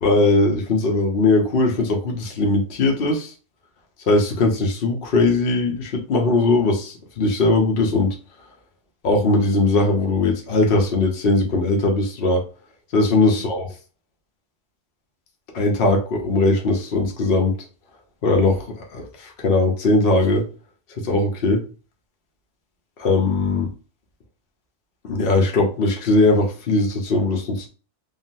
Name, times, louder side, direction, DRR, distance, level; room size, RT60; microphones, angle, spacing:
voice 1, 0.0-3.3 4.1-8.2 9.0-12.4 12.9-13.7 15.5-17.5 18.2-20.5 21.0-21.6 23.0-23.7 25.0-27.7, left 2 dB, 55° left, 1 dB, 0.9 m, -19 dB
3.8 x 2.0 x 2.6 m, 0.35 s
omnidirectional pair, 1.2 m